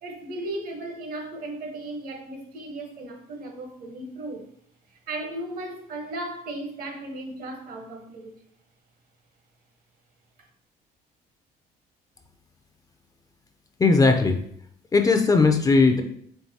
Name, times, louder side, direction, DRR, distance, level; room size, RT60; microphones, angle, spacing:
voice 1, 0.0-4.5 4.9-8.4, right 1 dB, 60° right, 1.0 m, -36 dB
voice 2, 13.8-14.4 14.9-16.0, left 4 dB, 20° left, 0.4 m, -18 dB
4.6 x 3.3 x 2.8 m
cardioid pair, 110°, 17 cm